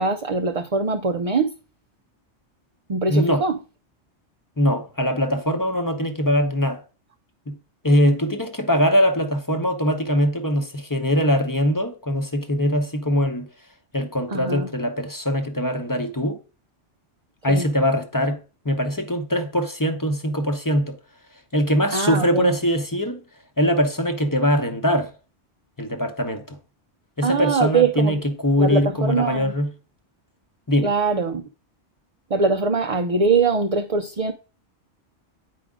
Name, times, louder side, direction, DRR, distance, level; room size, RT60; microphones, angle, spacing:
voice 1, 0.0-1.5 2.9-3.6 14.3-14.7 17.5-17.7 21.9-22.5 27.2-28.1 28.6-29.5 30.8-31.4 32.3-34.3, right 4 dB, 40° right, 0.6 m, -22 dB
voice 2, 3.1-3.4 4.6-6.8 7.5-7.6 7.8-13.5 13.9-16.4 17.4-21.0 21.5-23.2 23.6-25.1 25.8-26.6 27.2-29.7 30.7-30.9, equal, 20° left, 0.9 m, -22 dB
9.3 x 4.9 x 3.7 m
omnidirectional pair, 1.2 m